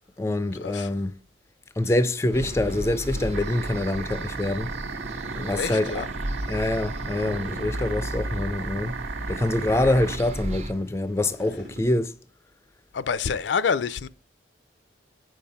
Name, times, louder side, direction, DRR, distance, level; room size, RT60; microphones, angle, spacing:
voice 1, 0.2-1.2 1.8-4.7 5.4-6.1 6.5-8.9 9.3-12.1, left 1 dB, 15° left, 0.4 m, -25 dB
sound 1, 1.9-11.8, right 1 dB, 50° right, 1.1 m, -43 dB
sound 2, 2.3-10.7, right 1 dB, 35° right, 0.7 m, -34 dB
sound 3, 3.3-10.2, right 6 dB, 85° right, 0.6 m, -36 dB
voice 2, 5.6-6.1 12.9-14.1, left 6 dB, 75° left, 0.5 m, -27 dB
9.1 x 5.4 x 5.6 m
head